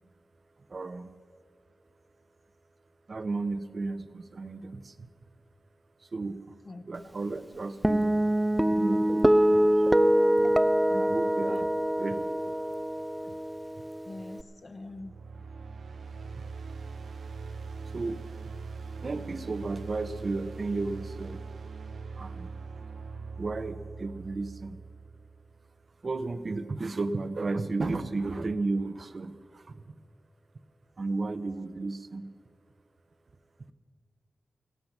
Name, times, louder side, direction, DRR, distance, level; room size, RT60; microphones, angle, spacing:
voice 1, 0.7-1.1 3.1-5.1 6.0-6.5 6.9-8.1 8.7-9.7 10.9-11.7 12.0-12.5 13.2-13.3 16.3-16.4 17.9-18.2 19.0-21.4 22.2-22.5 23.4-24.8 26.0-29.8 31.0-32.3, right 3 dB, 40° right, 13 dB, 0.6 m, -34 dB
Guitar, 7.8-14.4, right 1 dB, 10° right, 0.3 m, -24 dB
voice 2, 11.2-11.7 14.1-15.1, left 2 dB, 35° left, 10 dB, 0.7 m, -44 dB
sound 1, 14.8-25.8, right 4 dB, 80° right, 0.7 m, -41 dB
16.5 x 13.0 x 5.9 m, 2.1 s
wide cardioid pair, 150°, 0 cm